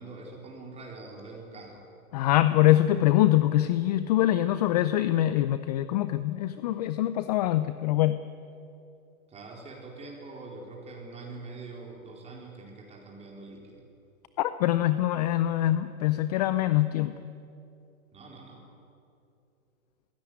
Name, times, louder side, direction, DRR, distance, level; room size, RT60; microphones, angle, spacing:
voice 1, 0.0-1.9 9.3-13.8 18.1-18.6, right 3 dB, 15° right, -1 dB, 4.4 m, -44 dB
voice 2, 2.1-8.2 14.4-17.3, left 14 dB, 30° left, 13 dB, 0.5 m, -24 dB
21.5 x 17.0 x 9.5 m, 2.7 s
hypercardioid pair, 140°, 42 cm